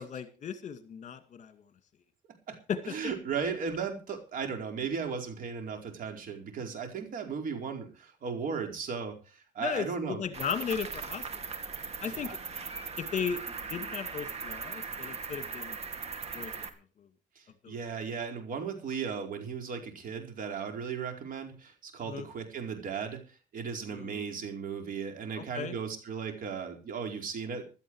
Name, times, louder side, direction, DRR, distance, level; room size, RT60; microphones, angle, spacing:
voice 1, 0.0-1.6 2.7-3.1 9.6-11.2 12.0-12.4 13.0-13.4 13.7-15.8 16.3-16.7 17.6-17.7 22.0-22.3 23.9-24.3 25.4-25.7, left 7 dB, 45° left, 9 dB, 2.2 m, -36 dB
voice 2, 2.8-10.2 12.1-12.4 17.4-23.2 23.5-27.8, right 6 dB, 55° right, 5 dB, 4.6 m, -36 dB
Cricket, 10.3-16.7, right 5 dB, 40° right, 2.3 m, -39 dB
16.0 x 12.5 x 4.8 m, 0.35 s
cardioid pair, 110°, 17 cm